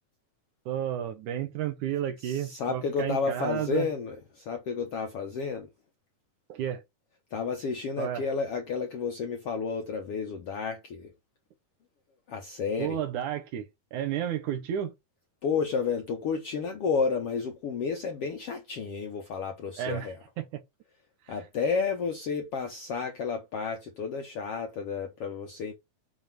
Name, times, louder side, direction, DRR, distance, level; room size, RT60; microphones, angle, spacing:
voice 1, 0.7-3.9 6.5-6.8 8.0-8.2 12.8-13.7 13.9-14.9 19.8-20.6 21.3-21.4, right 10 dB, 70° right, 2.4 m, -32 dB
voice 2, 2.2-5.7 7.3-11.1 12.3-13.0 15.4-20.2 21.3-25.7, left 5 dB, 65° left, 1.4 m, -31 dB
7.1 x 3.8 x 5.9 m
omnidirectional pair, 4.0 m